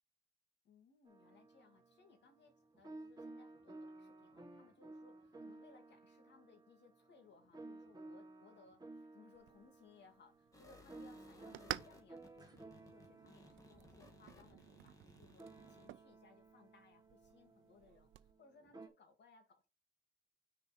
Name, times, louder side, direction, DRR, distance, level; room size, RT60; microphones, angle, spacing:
voice 1, 0.6-15.4 15.7-19.7, left 5 dB, 60° left, 2.4 m, -65 dB
sound 1, 1.1-18.9, right 2 dB, 20° right, 1.7 m, -56 dB
sound 2, 9.3-18.3, right 14 dB, 80° right, 0.5 m, -53 dB
sound 3, 10.5-15.9, left 1 dB, 15° left, 2.1 m, -62 dB
6.1 x 4.8 x 5.1 m
cardioid pair, 90°, 20 cm